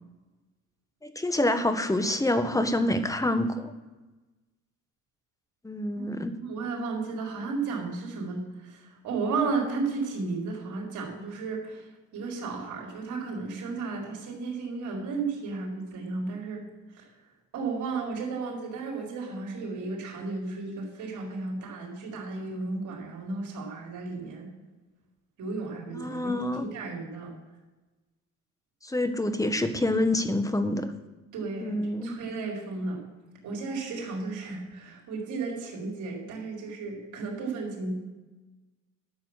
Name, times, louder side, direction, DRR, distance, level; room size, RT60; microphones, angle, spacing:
voice 1, 1.0-3.7 5.6-6.3 25.9-26.6 28.8-30.9 31.6-32.2, left 1 dB, 10° left, 9 dB, 1.2 m, -27 dB
voice 2, 6.0-11.9 12.1-16.6 16.9-17.0 17.5-24.5 25.4-26.3 26.6-27.3 31.3-33.0 33.4-37.9, right 4 dB, 75° right, -1 dB, 4.2 m, -34 dB
12.0 x 7.3 x 6.4 m, 1.2 s
cardioid pair, 90°, 30 cm